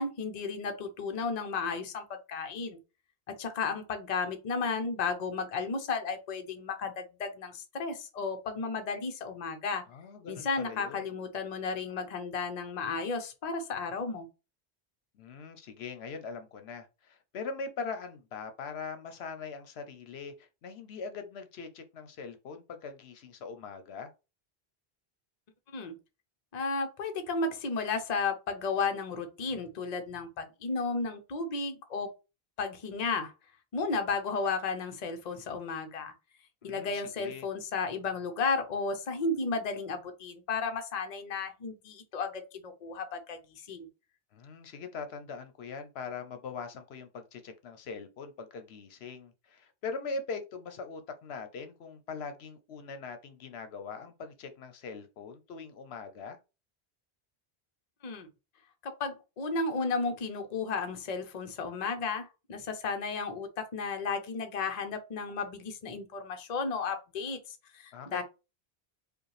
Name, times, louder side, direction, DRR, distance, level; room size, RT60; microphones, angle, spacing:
voice 1, 0.0-2.8 3.3-9.8 10.3-14.3 25.7-25.9 26.5-32.1 32.6-33.3 33.7-36.1 36.6-43.9 58.0-58.3 58.8-68.2, left 4 dB, 45° left, 0.7 m, -33 dB
voice 2, 9.9-11.0 15.1-24.1 36.6-37.5 44.3-56.4 67.9-68.2, left 4 dB, 75° left, 0.9 m, -41 dB
5.0 x 2.2 x 3.2 m
omnidirectional pair, 1.1 m